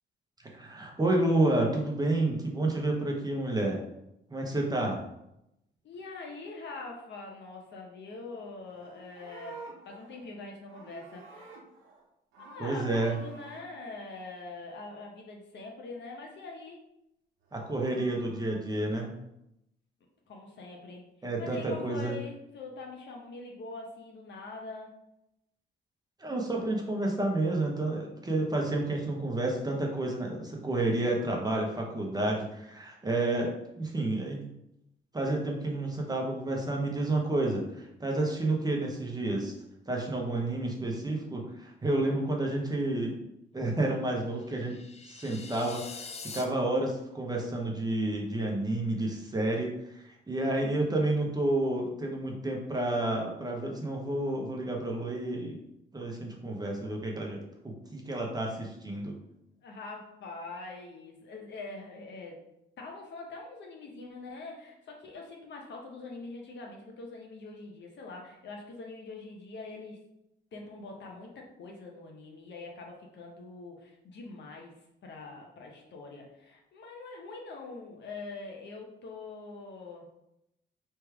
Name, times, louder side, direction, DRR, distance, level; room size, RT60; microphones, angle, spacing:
voice 1, 0.5-3.8 4.3-5.0 12.6-13.2 17.5-19.1 21.2-22.2 26.2-34.5 35.1-39.5 39.9-43.2 43.5-44.8 45.0-46.1 46.3-55.6 55.9-59.1, right 2 dB, 20° right, 0 dB, 1.0 m, -30 dB
voice 2, 5.8-9.6 9.8-11.5 12.4-16.8 20.3-21.0 21.4-24.9 59.6-62.4 62.8-70.0 70.5-74.8 75.0-80.1, left 3 dB, 65° left, 0 dB, 1.1 m, -44 dB
Livestock farm animals working animals, 8.6-12.0 12.3-13.6 17.4-18.6, right 4 dB, 90° right, 0.9 m, -50 dB
sound 1, 44.4-46.4, left 4 dB, 35° left, 0.5 m, -44 dB
3.4 x 3.0 x 4.7 m, 0.83 s
cardioid pair, 90°, 20 cm